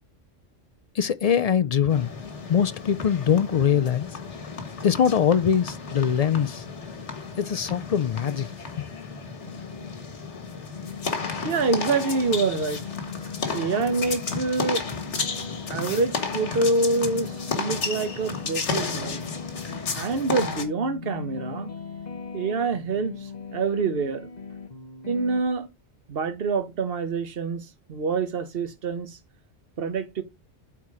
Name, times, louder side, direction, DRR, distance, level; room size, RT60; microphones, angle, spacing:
voice 1, 1.0-2.1 2.5-4.1 4.8-6.6 7.4-8.5, left 8 dB, 65° left, 0.3 m, -22 dB
sound 1, 1.9-20.6, left 5 dB, 80° left, 1.8 m, -33 dB
sound 2, 9.4-10.0 10.4-25.4, left 5 dB, 40° left, 1.3 m, -40 dB
voice 2, 11.4-12.8 13.5-14.8 15.7-19.3 19.9-21.7 22.3-23.1 23.5-24.3 25.1-25.7 26.1-29.2 29.8-30.2, right 3 dB, 55° right, 1.3 m, -26 dB
8.4 x 4.4 x 4.8 m
omnidirectional pair, 1.2 m